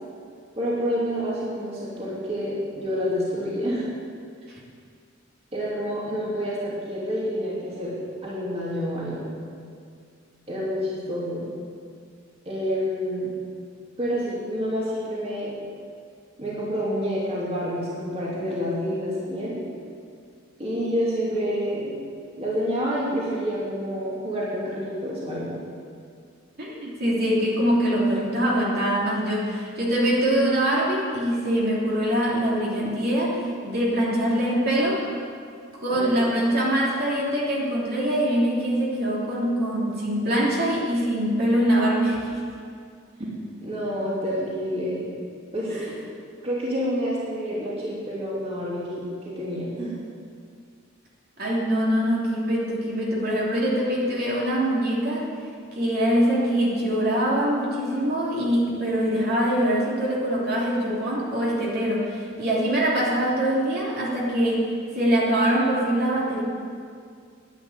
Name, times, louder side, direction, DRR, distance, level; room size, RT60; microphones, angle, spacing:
voice 1, 0.6-3.8 5.5-7.9 8.2-9.3 10.5-11.5 12.4-13.3 14.0-15.5 16.4-19.6 20.6-22.0 22.4-25.5 35.9-36.2 43.6-45.1 45.5-45.9 46.4-49.9, equal, 30° right, -7 dB, 2.8 m, -28 dB
voice 2, 26.6-35.0 35.8-42.4 45.7-45.8 51.4-55.3 55.7-64.7 64.9-66.4, equal, 50° right, -5 dB, 3.1 m, -23 dB
11.0 x 10.5 x 8.1 m, 2.2 s
head